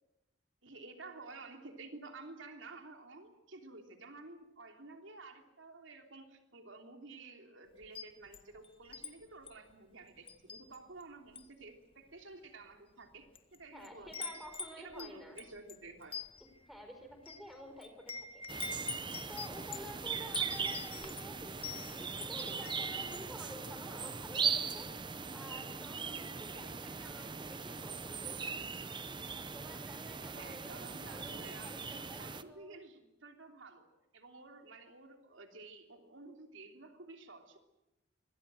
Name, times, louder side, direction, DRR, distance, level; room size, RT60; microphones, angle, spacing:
voice 1, 0.6-14.4 14.8-16.2 30.2-37.6, right 3 dB, 80° right, 4 dB, 3.2 m, -52 dB
Wind chime, 7.8-9.1 9.5-9.7 10.3-11.0 11.3-11.6 12.3-12.4 13.1-13.6 13.8-23.3, left 4 dB, 30° left, 1.6 m, -45 dB
voice 2, 13.7-15.4 16.7-18.4 19.1-24.9 25.3-28.7 29.2-32.8, equal, ahead, 5 dB, 5.0 m, -51 dB
sound 1, 18.5-32.4, right 6 dB, 25° right, 0.9 m, -40 dB
26.0 x 22.5 x 7.7 m, 0.95 s
head